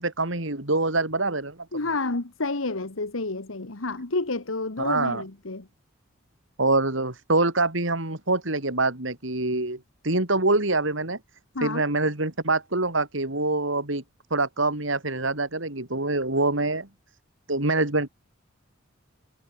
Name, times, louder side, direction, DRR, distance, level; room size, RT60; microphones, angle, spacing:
voice 1, 0.0-1.6 4.8-5.2 6.6-11.2 11.6-14.0 14.3-16.9 17.5-18.1, right 2 dB, 70° right, 3.8 m, -25 dB
voice 2, 1.7-5.7 11.5-11.8, left 3 dB, 85° left, 1.6 m, -29 dB
head